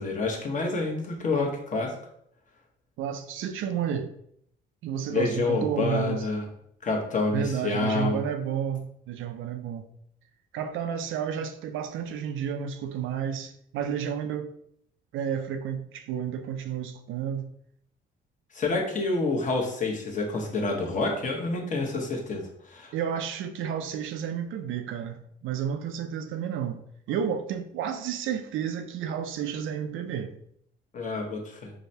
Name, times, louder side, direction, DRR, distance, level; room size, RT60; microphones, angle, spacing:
voice 1, 0.0-2.0 5.1-6.5 6.8-8.2 18.5-22.9 30.9-31.7, left 3 dB, 40° left, 1.0 m, -28 dB
voice 2, 3.0-4.1 4.8-6.3 7.3-9.9 10.5-14.5 15.1-17.5 22.9-26.8 27.1-30.3, right 8 dB, 75° right, 0.4 m, -31 dB
4.7 x 2.2 x 2.7 m
cardioid pair, 95°, 20 cm